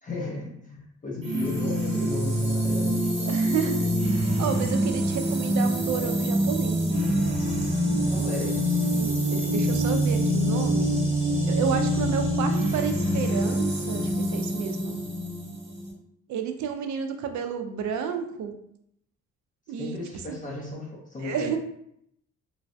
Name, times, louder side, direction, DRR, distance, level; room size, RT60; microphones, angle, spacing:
voice 1, 0.0-0.8 1.0-3.4 8.1-8.9 19.8-21.6, left 2 dB, 25° left, -3 dB, 0.7 m, -34 dB
sound 1, 1.2-15.9, right 1 dB, 20° right, 1.0 m, -25 dB
voice 2, 3.3-3.9 4.4-7.2 8.9-9.1 9.4-10.9 11.5-15.0 16.3-18.6 19.7-20.0 20.3-20.4 21.2-21.6, right 7 dB, 70° right, 6 dB, 0.5 m, -31 dB
3.1 x 2.2 x 2.6 m, 0.72 s
cardioid pair, 90°, 30 cm